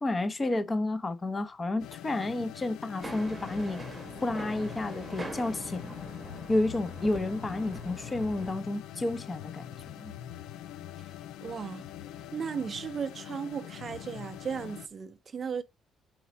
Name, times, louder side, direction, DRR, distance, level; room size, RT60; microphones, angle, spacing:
voice 1, 0.0-3.8 4.2-5.9 6.5-9.6 10.0-10.1, left 2 dB, 20° left, 0.7 m, -31 dB
sound 1, 1.8-14.9, left 11 dB, 85° left, 0.4 m, -43 dB
sound 2, 3.0-8.5, right 1 dB, 10° right, 1.0 m, -42 dB
voice 2, 11.4-11.9 12.3-15.6, right 6 dB, 35° right, 0.4 m, -36 dB
4.6 x 4.2 x 5.0 m
cardioid pair, 130°, 0 cm